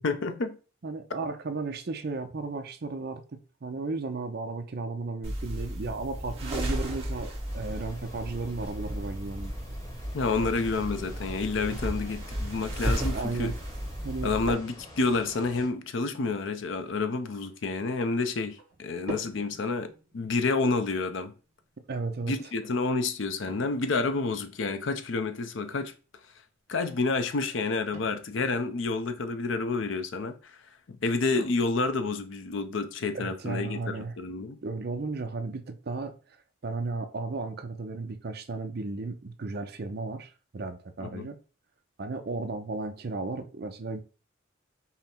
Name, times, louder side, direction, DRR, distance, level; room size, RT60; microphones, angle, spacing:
voice 1, 0.0-0.6 10.1-13.5 14.2-21.3 22.3-25.9 26.7-30.6 30.9-34.6 41.0-41.3, left 3 dB, 60° left, 0.5 m, -29 dB
voice 2, 0.8-9.5 13.0-13.5 14.0-14.3 21.9-22.3 33.1-34.1 34.6-36.2 36.6-41.4 42.0-44.0, right 3 dB, 50° right, 0.5 m, -34 dB
sound 1, 5.2-14.5, equal, 30° right, 1.3 m, -34 dB
sound 2, 7.5-15.7, left 1 dB, 15° left, 1.0 m, -48 dB
sound 3, 14.0-32.1, right 2 dB, 75° right, 1.3 m, -49 dB
5.6 x 2.1 x 4.3 m
head